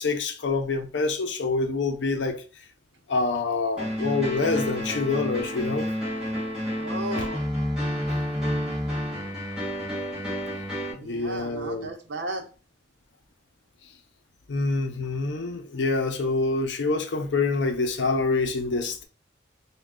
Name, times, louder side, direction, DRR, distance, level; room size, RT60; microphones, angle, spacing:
voice 1, 0.0-2.4 3.1-5.9 7.2-7.3 10.9-11.9 14.5-19.0, left 3 dB, 80° left, 0.6 m, -26 dB
sound 1, 3.8-10.9, equal, 5° right, 1.2 m, -29 dB
voice 2, 6.8-7.4 11.0-12.5, right 2 dB, 75° right, 0.7 m, -34 dB
3.2 x 2.2 x 3.6 m
head